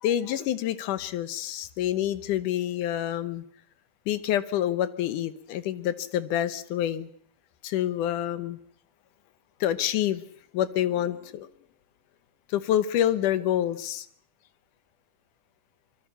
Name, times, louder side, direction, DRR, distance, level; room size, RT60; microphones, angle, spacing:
voice 1, 0.0-3.4 4.1-7.1 7.6-8.6 9.6-10.2 10.5-11.5 12.5-14.1, left 11 dB, 75° left, 13 dB, 2.5 m, -27 dB
25.0 x 23.5 x 5.7 m, 0.63 s
omnidirectional pair, 3.7 m